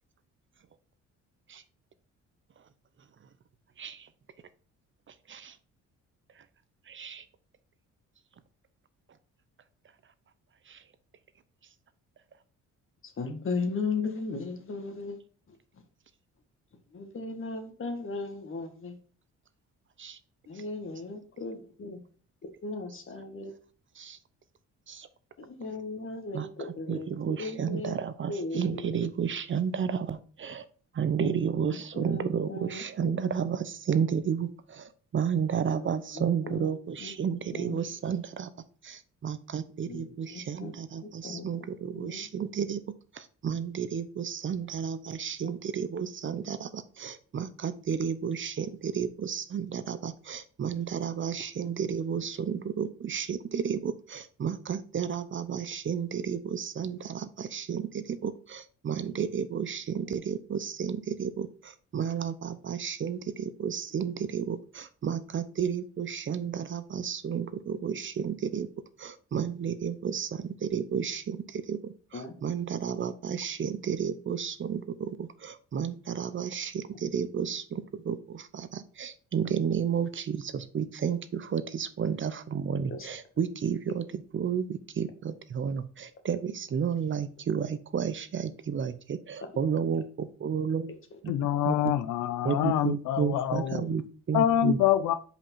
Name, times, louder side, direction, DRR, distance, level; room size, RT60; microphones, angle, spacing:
voice 1, 6.9-7.2 20.0-20.2 24.0-24.2 24.9-25.1 26.3-26.5 26.9-30.6 31.0-34.8 35.1-38.5 38.8-42.8 43.4-61.5 61.9-68.7 69.0-71.8 72.1-84.0 84.3-90.9 91.2-91.3 91.6-91.9 92.4-94.8, right 7 dB, 40° right, 0.7 m, -32 dB
voice 2, 13.2-15.2 16.9-19.0 20.5-22.0 22.6-23.5 25.4-28.0 28.3-29.1 31.2-33.3 35.7-35.9 36.1-36.7 37.0-37.1 37.5-37.9 39.9-40.7 41.2-41.4 41.9-42.3 45.4-45.5 46.2-46.3 72.1-72.3 82.9-83.1 93.8-93.9, left 3 dB, 45° left, 1.7 m, -37 dB
voice 3, 91.3-93.8 94.3-95.1, left 11 dB, 85° left, 0.6 m, -26 dB
5.3 x 4.9 x 5.5 m
cardioid pair, 90°, 30 cm